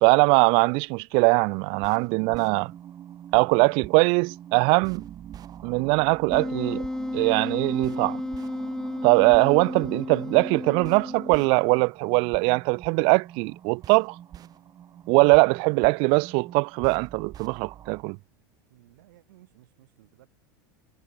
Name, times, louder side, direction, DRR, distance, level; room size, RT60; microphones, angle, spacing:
voice 1, 0.0-2.7 3.3-5.1 5.6-6.8 7.1-8.2 9.0-14.2 15.1-18.2, right 33 dB, 55° right, 0.4 m, -21 dB
sound 1, 1.7-18.0, right 10 dB, 35° right, 2.7 m, -44 dB
Wind instrument woodwind instrument, 6.3-11.7, left 1 dB, 5° left, 0.9 m, -33 dB
voice 2, 18.7-20.3, right 17 dB, 70° right, 5.4 m, -57 dB
hypercardioid pair, 95°, 11 cm